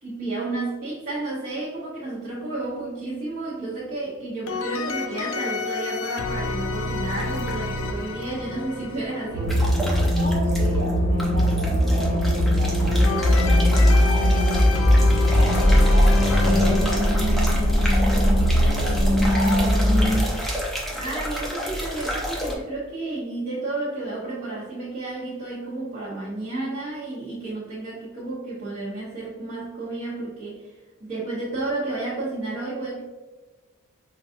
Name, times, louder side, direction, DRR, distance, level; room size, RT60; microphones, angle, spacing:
voice 1, 0.0-9.5 20.9-30.7 31.0-33.0, right 2 dB, 35° right, -11 dB, 1.0 m, -31 dB
sound 1, 4.5-10.1 13.0-19.1, left 4 dB, 65° left, 0.4 m, -31 dB
sound 2, 7.1-7.7 9.5-10.9 11.2-22.5, equal, ahead, 0.5 m, -31 dB
sound 3, 9.3-20.2, equal, 80° right, 1.1 m, -19 dB
voice 2, 10.1-15.0 15.3-19.7, equal, 50° right, -5 dB, 1.3 m, -35 dB
5.6 x 2.5 x 2.6 m, 1.3 s
head